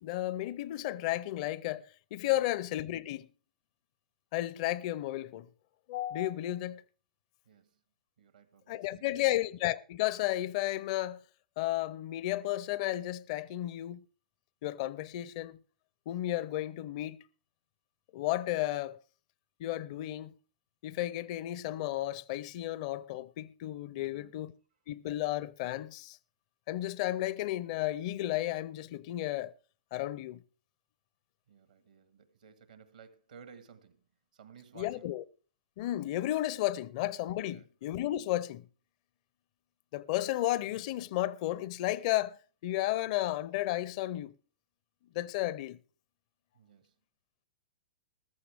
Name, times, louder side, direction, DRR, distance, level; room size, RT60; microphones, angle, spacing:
voice 1, 0.0-3.3 4.3-5.5 5.9-6.8 8.7-11.2 11.6-14.0 14.6-15.6 16.1-17.2 18.1-19.0 19.6-20.3 20.8-24.5 24.9-26.2 26.7-29.5 29.9-30.4 34.8-35.2 35.8-38.7 39.9-42.4 42.6-44.3 45.1-45.8, left 15 dB, 50° left, 0.5 m, -33 dB
voice 2, 7.5-7.8 8.2-9.2 24.0-24.3 31.5-35.1 37.4-37.7 46.5-47.0, right 7 dB, 80° right, 1.7 m, -56 dB
14.0 x 13.5 x 3.5 m
hypercardioid pair, 115°, 4 cm